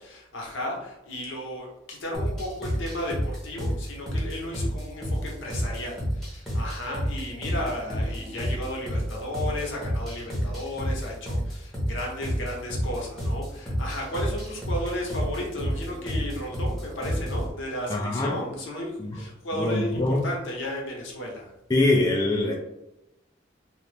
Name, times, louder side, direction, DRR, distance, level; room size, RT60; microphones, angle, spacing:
voice 1, 0.0-21.5, left 1 dB, 80° left, -1 dB, 0.9 m, -34 dB
sound 1, 2.1-17.5, equal, ahead, 0.8 m, -30 dB
voice 2, 17.9-18.4 19.0-19.2 19.6-20.3 21.7-22.6, left 2 dB, 20° left, -1 dB, 0.3 m, -23 dB
2.8 x 2.0 x 3.3 m, 0.90 s
head